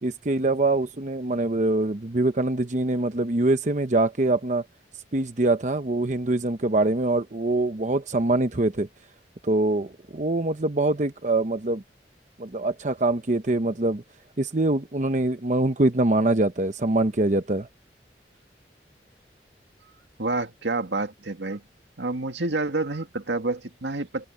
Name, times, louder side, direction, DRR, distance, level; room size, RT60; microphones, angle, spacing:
voice 1, 0.0-4.6 5.1-8.9 9.4-11.8 12.4-14.0 14.4-17.7, right 2 dB, 45° right, 0.9 m, -24 dB
voice 2, 20.2-21.6 22.0-24.3, right 2 dB, 90° right, 2.1 m, -28 dB
open air
head